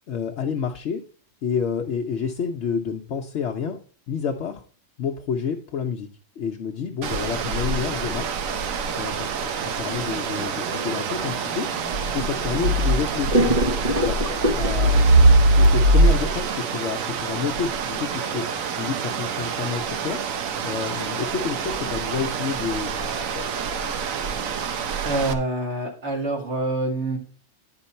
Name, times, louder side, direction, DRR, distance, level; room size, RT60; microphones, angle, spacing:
voice 1, 0.1-1.0 1.4-3.8 4.1-4.6 5.0-6.1 6.4-8.4 9.0-11.7 12.1-13.6 14.0-14.2 14.6-18.4 18.7-20.2 20.6-23.5, left 6 dB, 60° left, 2 dB, 0.9 m, -29 dB
sound 1, 7.0-25.3, right 2 dB, 80° right, 1.2 m, -23 dB
sound 2, 10.0-13.0 13.3-15.0 15.6-15.8, equal, 35° right, 0.7 m, -27 dB
voice 2, 25.0-27.2, right 2 dB, 55° right, 0 dB, 2.3 m, -26 dB
10.0 x 4.5 x 4.2 m, 0.42 s
omnidirectional pair, 1.4 m